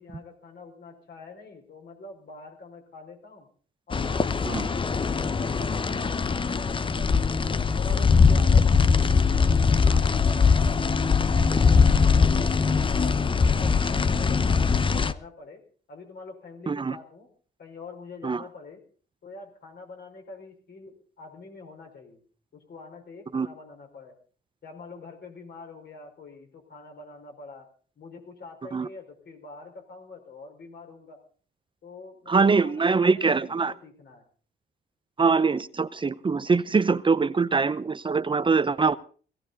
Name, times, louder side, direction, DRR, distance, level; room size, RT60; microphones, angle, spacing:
voice 1, 0.0-3.5 3.9-8.8 9.2-11.8 12.2-15.6 15.9-17.3 17.6-18.8 19.2-22.2 22.5-24.1 24.6-27.7 28.0-31.2 31.8-34.2, left 3 dB, 55° left, 3 dB, 4.9 m, -45 dB
sound 1, 3.9-15.1, left 5 dB, 25° left, 0.7 m, -21 dB
voice 2, 32.3-33.7 35.2-39.0, right 4 dB, 25° right, 14 dB, 0.7 m, -23 dB
17.5 x 16.0 x 4.1 m, 0.42 s
cardioid pair, 90°, 20 cm